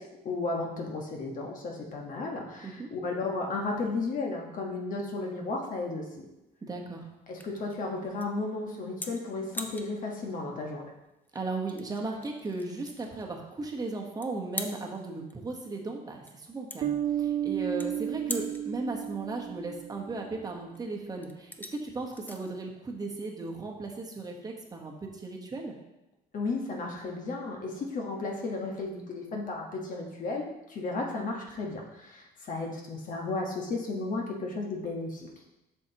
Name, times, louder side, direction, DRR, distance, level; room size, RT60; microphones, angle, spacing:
voice 1, 0.0-6.1 7.3-10.9 26.3-35.3, left 3 dB, 50° left, 0 dB, 1.3 m, -34 dB
sound 1, 5.1-23.9, left 1 dB, 10° left, 0.6 m, -46 dB
voice 2, 6.6-7.1 11.3-25.7, right 3 dB, 20° right, 1 dB, 1.1 m, -36 dB
Bass guitar, 16.8-20.3, right 10 dB, 40° right, 0.5 m, -32 dB
7.6 x 5.7 x 2.9 m, 0.94 s
cardioid pair, 110°, 17 cm